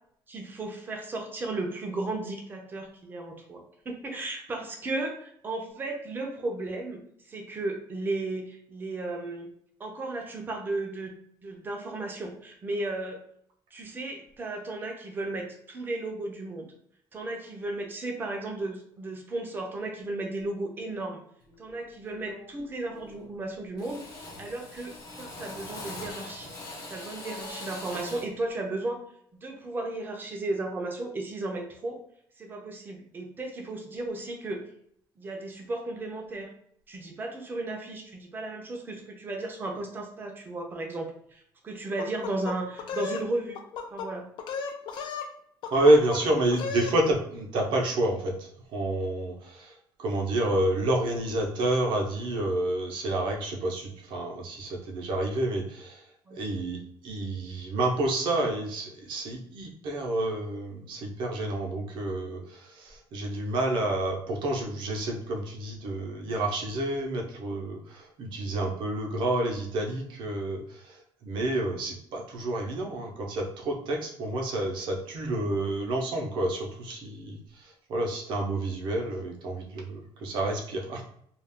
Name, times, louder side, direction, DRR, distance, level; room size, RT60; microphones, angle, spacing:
voice 1, 0.3-7.0 7.3-9.5 9.8-11.1 11.4-13.2 13.7-16.7 17.1-21.2 21.6-24.1 24.4-26.5 26.9-29.0 29.4-32.0 32.4-34.6 35.2-36.5 36.9-43.6 43.9-44.3 56.3-56.7, right 2 dB, 20° right, 3 dB, 0.5 m, -35 dB
Drill, 21.5-21.7 22.1-22.6 22.9-23.4 23.8-28.4, left 2 dB, 40° left, 1.1 m, -42 dB
sound 1, 42.0-43.2 43.5-44.1 44.4-45.3 45.6-46.2 46.5-47.0, left 5 dB, 60° left, 0.4 m, -34 dB
voice 2, 45.7-56.0 56.3-81.0, right 1 dB, 60° right, 1 dB, 0.7 m, -29 dB
2.4 x 2.4 x 3.5 m, 0.67 s
cardioid pair, 170°, 9 cm